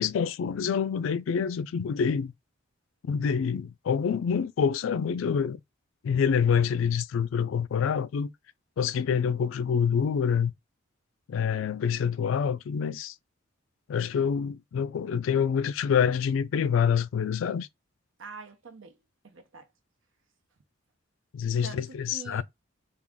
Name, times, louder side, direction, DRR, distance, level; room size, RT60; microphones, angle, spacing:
voice 1, 0.0-2.3 3.1-5.6 6.0-8.3 8.8-10.5 11.3-13.1 13.9-17.7 21.3-22.4, left 7 dB, 80° left, 0.3 m, -26 dB
voice 2, 18.2-19.0 19.2-19.7 21.6-22.4, right 4 dB, 75° right, 0.8 m, -45 dB
3.5 x 2.4 x 3.6 m
head